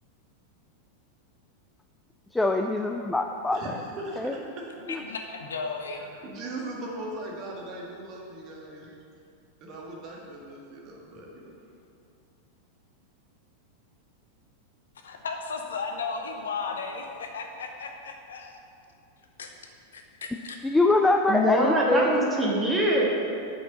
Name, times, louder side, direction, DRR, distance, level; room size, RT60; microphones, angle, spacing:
voice 1, 2.3-3.6 4.2-4.3 4.9-5.0 20.6-22.3, left 2 dB, 5° left, 3 dB, 0.3 m, -24 dB
voice 2, 3.5-4.7 5.9-8.9 9.6-11.5, right 1 dB, 35° right, -2 dB, 1.7 m, -39 dB
voice 3, 4.9-6.2 15.0-18.6 19.4-19.5 19.9-20.6, left 4 dB, 65° left, 3 dB, 0.8 m, -35 dB
voice 4, 21.3-23.1, equal, 10° right, -3 dB, 1.6 m, -23 dB
6.1 x 5.8 x 6.7 m, 2.5 s
figure-of-eight pair, 90°, 0 cm